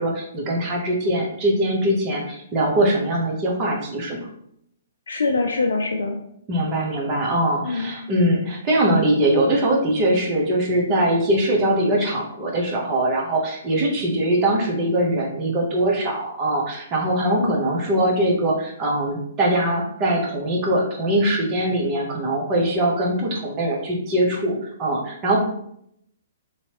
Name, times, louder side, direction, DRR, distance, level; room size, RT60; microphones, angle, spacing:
voice 1, 0.0-4.2 6.5-25.4, right 1 dB, 30° right, -1 dB, 1.0 m, -22 dB
voice 2, 5.1-6.2 7.6-7.9 17.4-17.6, left 3 dB, 75° left, 3 dB, 0.3 m, -23 dB
3.1 x 2.8 x 2.9 m, 0.71 s
hypercardioid pair, 125°, 0 cm